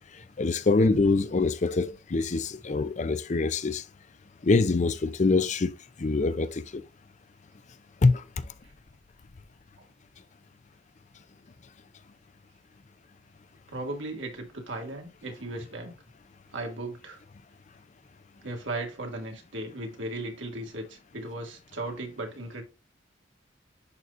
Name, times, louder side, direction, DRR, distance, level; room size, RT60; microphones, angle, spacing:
voice 1, 0.4-3.8 4.4-6.8 8.0-8.4, left 3 dB, 40° left, 0.5 m, -25 dB
voice 2, 13.7-15.9 16.5-17.2 18.4-22.6, right 2 dB, 85° right, 2.1 m, -36 dB
11.0 x 4.1 x 2.5 m
head